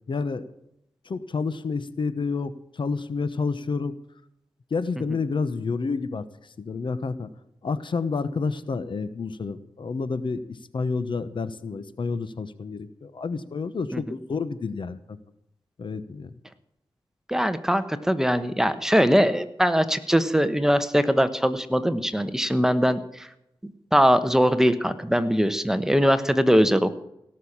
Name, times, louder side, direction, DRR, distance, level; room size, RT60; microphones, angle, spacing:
voice 1, 0.1-0.5 1.0-3.9 4.7-6.2 6.6-7.3 7.6-15.2 15.8-16.3, left 4 dB, 65° left, 13 dB, 1.0 m, -29 dB
voice 2, 17.3-23.3 23.6-26.9, equal, 5° right, 11 dB, 1.0 m, -21 dB
17.5 x 6.6 x 8.7 m, 0.81 s
wide cardioid pair, 85°, 9 cm